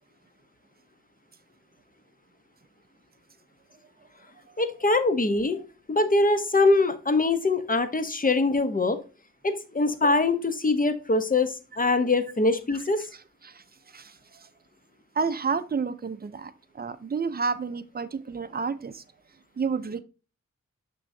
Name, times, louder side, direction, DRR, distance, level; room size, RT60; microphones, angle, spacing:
voice 1, 4.6-5.6 5.9-9.0 9.4-13.0, left 3 dB, 30° left, 10 dB, 0.9 m, -23 dB
voice 2, 13.4-14.5 15.1-19.0 19.6-20.0, right 5 dB, 35° right, 12 dB, 0.5 m, -30 dB
6.3 x 6.1 x 2.7 m, 0.32 s
wide cardioid pair, 85°, 29 cm